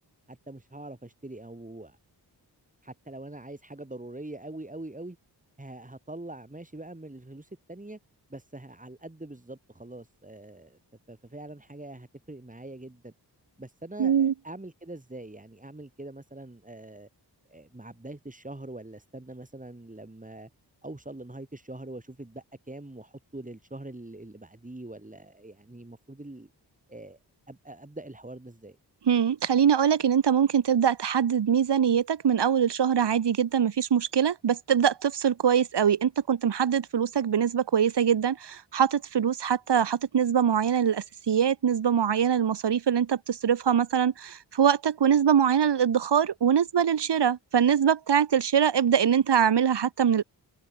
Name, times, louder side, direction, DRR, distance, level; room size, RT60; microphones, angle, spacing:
voice 1, 0.3-2.0 2.8-5.2 5.6-8.0 8.3-10.8 11.1-13.1 13.6-17.1 17.5-20.5 20.8-26.5 26.9-27.2 27.5-28.8, right 2 dB, 20° right, 6.3 m, -43 dB
voice 2, 14.0-14.3 29.1-50.2, right 8 dB, 70° right, 1.4 m, -23 dB
cardioid pair, 65°, 42 cm